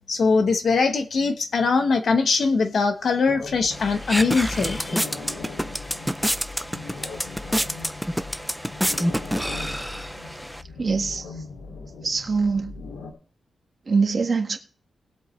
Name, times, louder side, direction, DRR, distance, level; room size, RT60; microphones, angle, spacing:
voice 1, 0.1-5.0, left 4 dB, 50° left, 1.0 m, -22 dB
sound 1, 3.2-13.1, left 4 dB, 80° left, 2.5 m, -39 dB
sound 2, 3.7-10.6, equal, ahead, 0.5 m, -28 dB
voice 2, 10.8-11.2 12.0-12.7 13.9-14.6, right 4 dB, 35° right, 1.6 m, -23 dB
20.0 x 8.0 x 3.2 m
wide cardioid pair, 155°, 0 cm